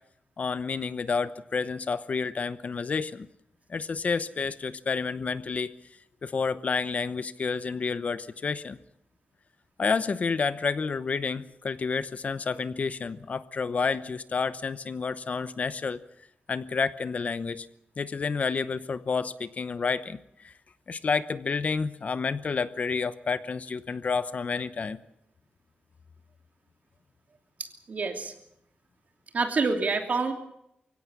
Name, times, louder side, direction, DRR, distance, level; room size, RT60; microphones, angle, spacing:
voice 1, 0.4-3.3 3.7-5.8 6.2-8.8 9.8-16.0 16.5-17.7 18.0-20.5 20.9-25.0, left 5 dB, 45° left, 14 dB, 0.9 m, -30 dB
voice 2, 27.6-28.3 29.3-30.3, right 4 dB, 50° right, 5 dB, 3.0 m, -27 dB
24.0 x 16.5 x 8.5 m, 0.78 s
wide cardioid pair, 165°, 3 cm